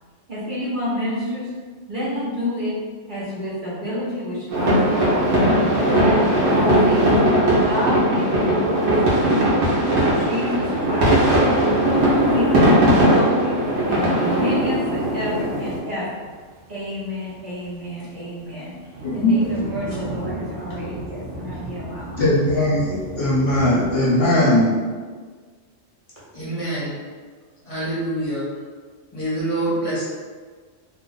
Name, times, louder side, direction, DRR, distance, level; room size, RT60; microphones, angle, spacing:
voice 1, 0.3-1.5 1.9-2.8 3.1-4.8 5.0-5.3 5.9-7.1 7.6-9.4 9.8-11.1 11.6-13.6 13.9-16.3 16.7-18.8 19.1-22.2, left 1 dB, 45° right, -9 dB, 1.0 m, -28 dB
sound 1, 4.5-15.8, right 1 dB, 60° right, 1.1 m, -18 dB
sound 2, 10.1-24.1, right 1 dB, 85° right, 1.0 m, -38 dB
voice 2, 19.0-19.6 22.2-24.7, left 1 dB, 60° left, -6 dB, 0.8 m, -19 dB
voice 3, 26.3-27.0 27.6-28.5 29.1-30.0, right 1 dB, 30° left, -10 dB, 1.1 m, -26 dB
2.5 x 2.5 x 3.8 m, 1.5 s
omnidirectional pair, 1.3 m